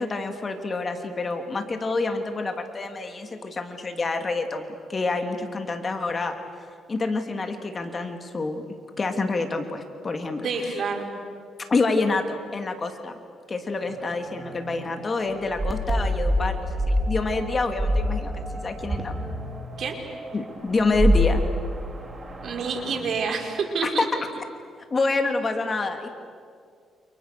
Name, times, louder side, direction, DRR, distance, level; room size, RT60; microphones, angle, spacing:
voice 1, 0.0-6.3 6.9-8.6 9.0-10.8 11.6-13.2 13.5-19.1 20.3-21.4 23.8-24.1 24.4-24.5 24.9-26.1, left 3 dB, 35° left, 5 dB, 2.9 m, -27 dB
voice 2, 10.4-11.1 19.8-20.0 22.4-24.1, right 5 dB, 60° right, 3 dB, 5.2 m, -28 dB
sound 1, 13.8-23.0, equal, 25° right, 4.3 m, -27 dB
29.0 x 28.5 x 6.9 m, 2.1 s
cardioid pair, 90°, 0 cm